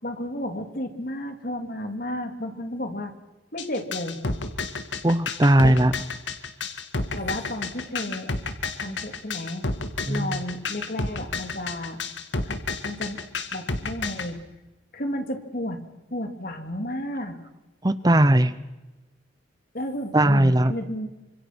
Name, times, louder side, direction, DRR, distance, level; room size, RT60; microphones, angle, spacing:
voice 1, 0.0-3.1 3.5-4.2 5.6-5.8 7.2-8.3 8.8-9.7 10.1-12.0 12.4-12.6 12.8-13.2 13.5-14.4 14.9-15.8 16.1-17.3 19.7-21.1, left 1 dB, 50° left, 6 dB, 3.3 m, -32 dB
sound 1, 3.6-14.3, left 3 dB, 70° left, 2.1 m, -30 dB
voice 2, 5.0-5.9 10.1-10.4 17.8-18.5 20.1-20.7, right 1 dB, 20° right, 13 dB, 0.8 m, -18 dB
28.0 x 26.5 x 6.3 m, 1.1 s
head